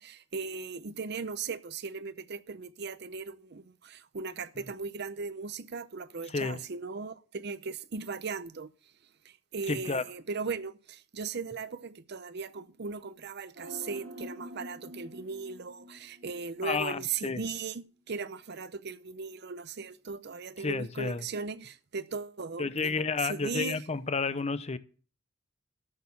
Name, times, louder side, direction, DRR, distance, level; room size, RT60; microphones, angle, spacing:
voice 1, 0.0-8.7 9.2-23.8, right 5 dB, 60° right, 0.7 m, -38 dB
voice 2, 9.7-10.0 16.6-17.4 20.6-21.2 22.6-24.8, left 4 dB, 35° left, 0.8 m, -31 dB
sound 1, 13.6-16.8 17.1-17.2, equal, 85° right, 2.8 m, -46 dB
13.5 x 6.6 x 7.1 m
head